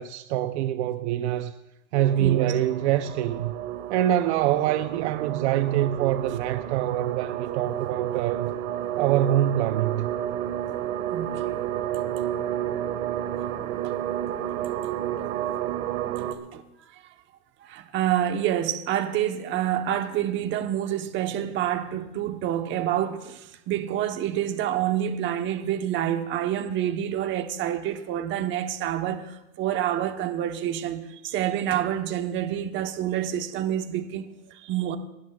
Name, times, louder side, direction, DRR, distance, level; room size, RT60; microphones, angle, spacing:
voice 1, 0.0-1.5 1.9-3.5 3.9-8.5 9.0-10.1, right 12 dB, 55° right, 0.6 m, -25 dB
sound 1, 1.9-16.3, right 11 dB, 75° right, 1.7 m, -31 dB
voice 2, 2.2-2.5 11.1-11.5 13.8-14.0 16.5-16.6 16.9-17.0 17.6-35.0, right 11 dB, 30° right, 1.0 m, -28 dB
29.5 x 12.5 x 2.4 m
supercardioid pair, 155°, 41 cm